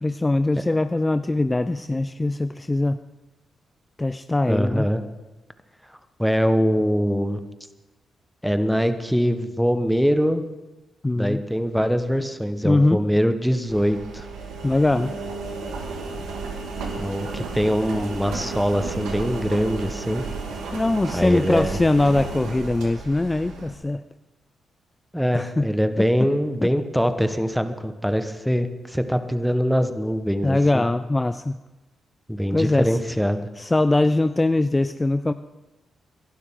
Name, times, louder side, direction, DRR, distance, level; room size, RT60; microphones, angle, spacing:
voice 1, 0.0-3.0 4.0-4.9 11.0-11.4 12.6-13.0 14.6-15.1 20.7-24.0 25.3-25.6 26.6-26.7 30.4-31.6 32.5-33.0 33.6-35.3, left 2 dB, 20° left, 11 dB, 0.5 m, -22 dB
voice 2, 4.5-5.0 6.2-7.4 8.4-10.4 11.1-14.3 17.0-20.2 21.1-21.8 25.1-30.9 32.3-33.5, equal, ahead, 9 dB, 1.4 m, -23 dB
Engine, 13.7-23.7, right 4 dB, 80° right, 2.0 m, -33 dB
22.0 x 12.0 x 3.9 m, 1.1 s
hypercardioid pair, 45°, 0 cm